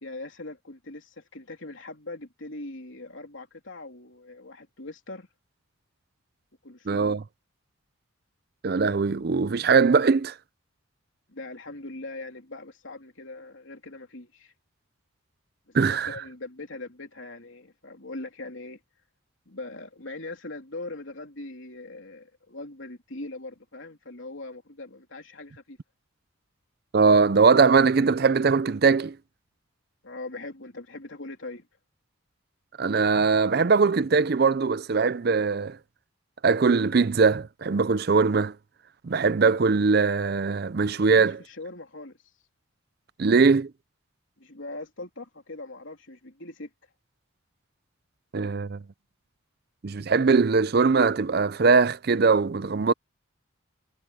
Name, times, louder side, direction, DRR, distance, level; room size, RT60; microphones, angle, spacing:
voice 1, 0.0-5.3 6.6-7.1 11.3-14.5 15.9-18.8 19.4-25.8 30.0-31.7 41.0-42.2 44.4-46.7, left 2 dB, 70° left, 3.3 m, -41 dB
voice 2, 6.9-7.2 8.6-10.3 15.7-16.1 26.9-29.2 32.8-35.8 36.4-38.5 39.0-41.4 43.2-43.7 48.3-48.8 49.8-52.9, right 4 dB, 50° right, 0.5 m, -21 dB
head